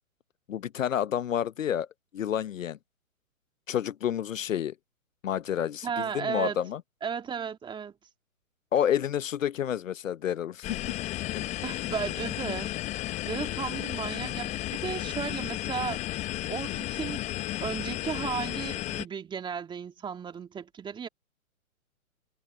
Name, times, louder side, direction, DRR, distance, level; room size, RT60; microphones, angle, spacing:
voice 1, 0.5-1.9 2.1-2.8 3.7-4.7 5.2-6.8 8.7-10.8 11.3-11.5, left 10 dB, 65° left, 0.9 m, -29 dB
voice 2, 5.8-6.6 7.0-7.9 11.6-12.8 13.2-16.0 16.5-17.2 17.6-21.1, right 7 dB, 10° right, 2.1 m, -34 dB
sound 1, 10.6-19.0, left 15 dB, 15° left, 1.0 m, -33 dB
hypercardioid pair, 135°, 42 cm